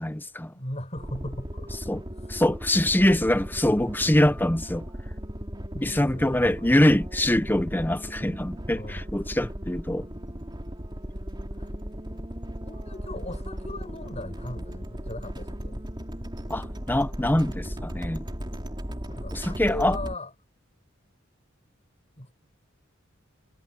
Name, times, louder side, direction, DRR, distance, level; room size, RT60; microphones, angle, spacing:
voice 1, 0.0-0.5 1.9-2.0 2.3-4.9 5.8-10.1 16.5-18.2 19.3-20.0, left 1 dB, 10° left, 0.9 m, -24 dB
voice 2, 0.5-1.8 2.2-2.3 5.7-6.7 8.7-9.1 11.5-11.7 12.6-15.8 19.2-20.3 22.2-22.3, left 1 dB, 35° left, 7.1 m, -38 dB
sound 1, 1.0-20.2, equal, 20° right, 3.5 m, -36 dB
head